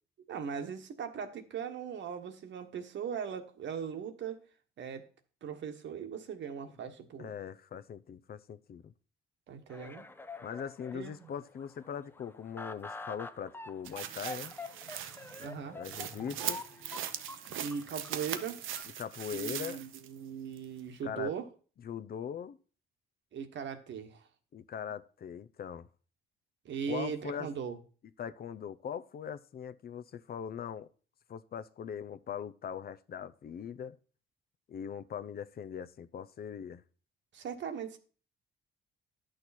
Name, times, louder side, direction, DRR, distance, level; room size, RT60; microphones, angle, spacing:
voice 1, 0.3-4.4 4.8-5.0 5.4-7.3 9.5-10.1 10.9-11.3 15.4-15.8 17.5-18.6 19.3-21.5 23.3-24.2 26.6-27.8 37.3-38.0, right 7 dB, 65° right, 1.4 m, -39 dB
voice 2, 7.2-8.9 10.4-14.5 15.7-16.6 19.0-19.8 21.0-21.3 21.8-22.6 24.5-25.9 26.9-27.5 28.2-30.9 31.3-34.0 34.7-36.8, left 8 dB, 50° left, 0.7 m, -41 dB
sound 1, 9.7-18.8, left 2 dB, 10° left, 0.6 m, -47 dB
sound 2, 13.8-20.2 20.6-20.7, right 10 dB, 85° right, 0.8 m, -40 dB
10.5 x 6.5 x 4.2 m
cardioid pair, 90°, 20 cm